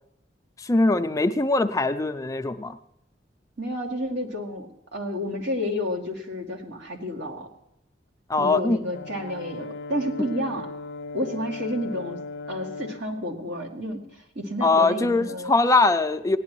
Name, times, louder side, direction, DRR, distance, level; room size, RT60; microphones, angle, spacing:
voice 1, 0.6-2.8 8.3-8.8 14.6-16.4, left 3 dB, 20° left, 8 dB, 0.4 m, -22 dB
voice 2, 3.6-7.5 8.4-10.7 11.1-12.2 12.5-15.5, left 1 dB, 75° right, -1 dB, 2.4 m, -30 dB
Brass instrument, 8.9-13.1, left 3 dB, 75° left, 0.5 m, -37 dB
18.5 x 10.5 x 3.1 m, 0.82 s
head